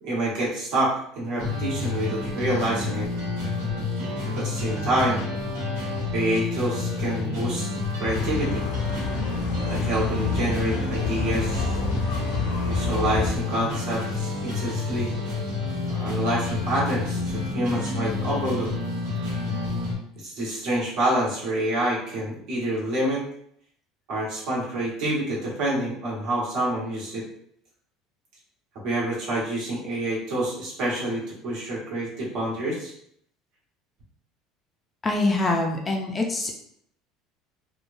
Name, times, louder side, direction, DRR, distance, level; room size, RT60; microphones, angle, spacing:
voice 1, 0.0-3.1 4.3-5.3 6.1-7.7 8.0-8.6 9.7-11.8 12.7-15.1 15.9-17.2 17.5-18.7 20.2-23.2 24.1-27.2 28.8-32.9, right 1 dB, 60° right, -5 dB, 1.3 m, -27 dB
sound 1, 1.4-19.9, left 3 dB, 90° right, 1.2 m, -29 dB
sound 2, 8.0-13.3, left 4 dB, 80° left, 0.5 m, -29 dB
voice 2, 35.0-36.6, left 2 dB, 15° left, 0 dB, 0.4 m, -24 dB
3.1 x 2.2 x 2.5 m, 0.68 s
cardioid pair, 150°, 0 cm